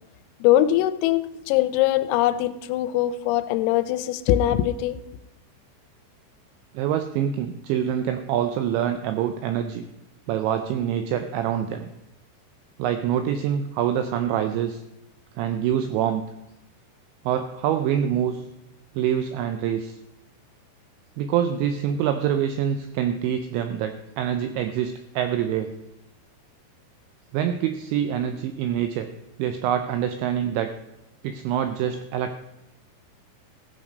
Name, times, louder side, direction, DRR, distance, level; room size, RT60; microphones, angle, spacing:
voice 1, 0.4-5.0, left 13 dB, 85° left, 13 dB, 3.3 m, -22 dB
voice 2, 6.7-9.9 10.3-11.9 12.8-14.8 15.4-16.2 17.3-18.4 19.0-19.9 21.2-25.7 27.3-29.1 29.4-30.8 31.2-32.4, right 9 dB, 85° right, 8 dB, 2.6 m, -25 dB
15.0 x 7.6 x 5.2 m, 0.89 s
omnidirectional pair, 5.9 m